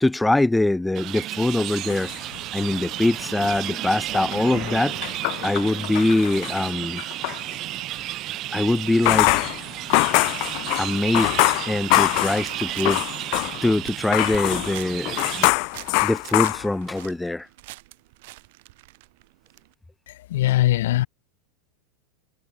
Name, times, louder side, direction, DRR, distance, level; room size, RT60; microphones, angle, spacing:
voice 1, 0.0-4.9 5.4-7.0 8.5-9.3 10.8-11.3 11.7-13.0 13.6-15.5 16.0-17.5, left 2 dB, 5° left, 1.0 m, -23 dB
sound 1, 1.0-15.5, right 15 dB, 25° right, 3.4 m, -33 dB
sound 2, 1.7-2.9 3.3-7.4 8.9-13.8 14.1-17.1, left 40 dB or more, 40° left, 1.6 m, -24 dB
sound 3, 9.3-19.7, right 22 dB, 50° right, 4.0 m, -46 dB
voice 2, 20.1-21.1, left 15 dB, 65° left, 1.6 m, -21 dB
supercardioid pair, 180°, 0 cm